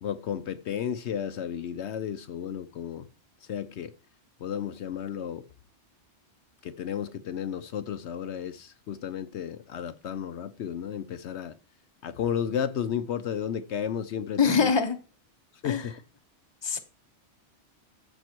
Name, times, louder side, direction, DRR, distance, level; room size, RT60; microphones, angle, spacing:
voice 1, 0.0-3.1 3.5-3.9 4.4-5.4 6.6-11.6 12.0-14.7 15.6-15.9, left 8 dB, 70° left, 0.9 m, -33 dB
voice 2, 14.4-15.0 15.6-15.9 16.6-16.8, left 6 dB, 25° left, 1.0 m, -24 dB
14.5 x 5.9 x 4.5 m
omnidirectional pair, 1.2 m